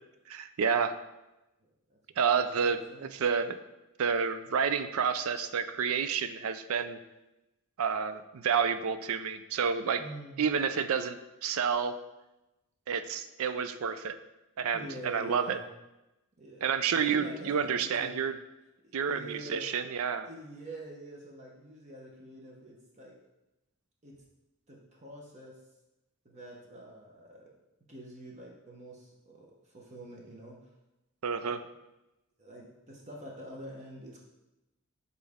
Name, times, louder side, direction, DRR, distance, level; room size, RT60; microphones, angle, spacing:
voice 1, 0.3-0.9 2.2-2.8 3.1-3.6 4.0-7.0 7.8-10.0 10.4-11.9 12.9-14.2 14.6-15.6 16.6-18.4 18.9-20.3 31.2-31.6, right 6 dB, 70° right, 11 dB, 0.4 m, -29 dB
voice 2, 1.6-2.0 2.3-2.6 2.9-3.1 10.0-10.4 14.7-15.6 16.4-16.7 16.9-18.2 18.8-19.7 20.2-23.2 24.0-24.2 24.7-25.6 26.2-27.5 27.9-30.7 31.4-31.5 32.4-34.2, right 1 dB, 35° right, -2 dB, 0.9 m, -46 dB
7.2 x 4.0 x 3.5 m, 0.98 s
head